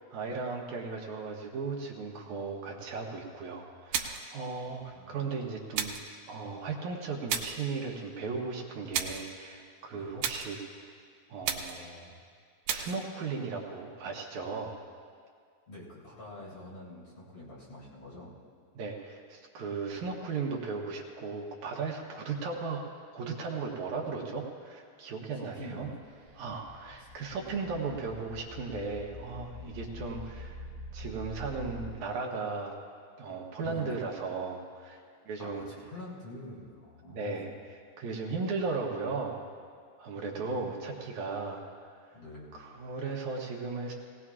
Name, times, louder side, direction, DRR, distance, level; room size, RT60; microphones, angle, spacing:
voice 1, 0.0-5.9 6.3-10.9 11.3-12.1 12.7-14.8 18.8-22.8 23.1-25.9 26.4-30.7 30.9-32.7 33.2-35.6 37.1-39.5 40.0-42.1 42.5-43.9, right 4 dB, 70° right, 0 dB, 2.3 m, -36 dB
sound 1, 3.9-4.4 5.7-6.1 7.3-7.7 8.9-9.3 10.2-10.6 11.4-11.9 12.7-13.0, right 8 dB, 90° right, 2.4 m, -33 dB
voice 2, 4.7-5.3 9.9-10.2 15.7-18.3 19.9-20.0 25.3-26.0 27.0-27.1 27.3-27.6 29.6-30.4 33.6-33.9 35.4-37.5 40.2-41.2 42.1-42.6, left 1 dB, 50° left, -8 dB, 4.6 m, -47 dB
sound 2, 26.0-31.9, left 1 dB, 55° right, 1.4 m, -45 dB
19.0 x 18.5 x 2.4 m, 2.1 s
omnidirectional pair, 3.7 m